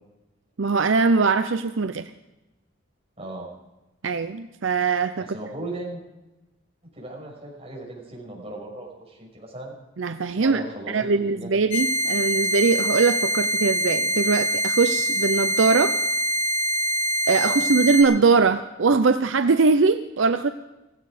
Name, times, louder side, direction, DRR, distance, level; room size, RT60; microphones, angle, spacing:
voice 1, 0.6-2.1 4.0-5.2 10.0-10.6 10.9-16.0 17.3-20.5, right 4 dB, 75° right, 10 dB, 0.6 m, -21 dB
voice 2, 3.2-3.5 5.2-6.0 7.0-9.7 10.4-11.5 17.4-17.6, right 1 dB, 30° right, -3 dB, 6.0 m, -36 dB
sound 1, 11.7-18.0, right 1 dB, 65° left, 3.3 m, -24 dB
16.5 x 16.5 x 5.0 m, 1.0 s
head